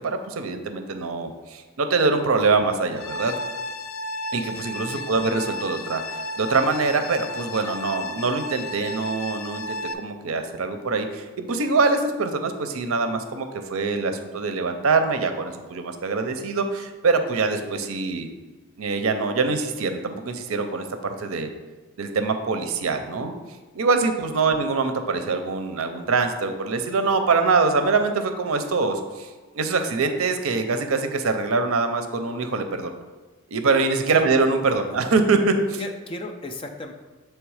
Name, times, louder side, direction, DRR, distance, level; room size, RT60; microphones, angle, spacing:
voice 1, 0.0-3.3 4.3-18.3 18.8-21.5 22.0-23.3 23.7-32.9 33.5-35.8, right 4 dB, 80° right, 7 dB, 0.6 m, -24 dB
sound 1, 3.0-9.9, left 2 dB, 80° left, 0.5 m, -33 dB
voice 2, 4.9-5.3 34.1-34.2 34.7-35.0 35.8-36.9, left 1 dB, 25° left, 4 dB, 0.5 m, -36 dB
7.3 x 3.3 x 4.8 m, 1.3 s
head